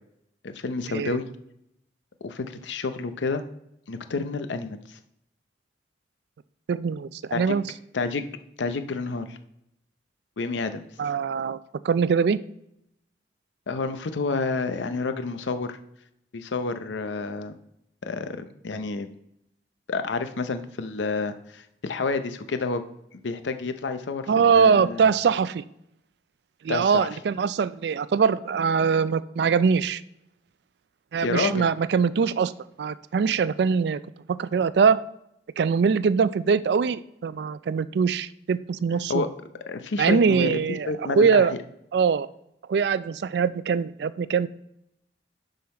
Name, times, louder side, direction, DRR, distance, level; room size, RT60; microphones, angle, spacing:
voice 1, 0.4-1.3 2.2-3.4 3.9-5.0 7.3-7.6 7.9-8.3 8.6-9.4 10.4-10.8 13.7-15.8 16.3-17.6 18.0-19.1 19.9-22.8 23.1-25.0 26.7-27.1 31.2-31.7 39.1-39.3 39.7-40.6 40.9-41.6, left 3 dB, 85° left, 9 dB, 0.6 m, -29 dB
voice 2, 6.7-7.6 11.0-11.6 11.8-12.4 24.3-25.6 26.6-30.0 31.1-32.5 32.8-34.0 34.4-35.0 35.6-39.2 40.0-41.5 41.9-42.3 42.7-44.5, right 6 dB, 65° right, 16 dB, 0.3 m, -22 dB
11.5 x 3.9 x 4.3 m, 0.80 s
head